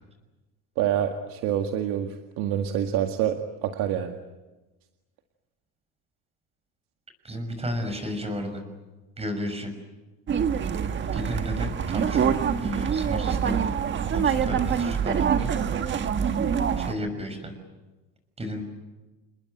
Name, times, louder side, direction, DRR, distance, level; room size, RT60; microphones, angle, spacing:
voice 1, 0.8-4.2, right 10 dB, 70° right, 5 dB, 2.0 m, -27 dB
voice 2, 7.2-8.6 9.2-9.7 11.1-13.7 14.1-15.5 16.8-17.5 18.4-18.6, equal, 15° right, 7 dB, 6.2 m, -33 dB
sound 1, 10.3-16.9, right 7 dB, 30° right, 1.5 m, -25 dB
29.5 x 21.0 x 9.0 m, 1.1 s
cardioid pair, 140°, 36 cm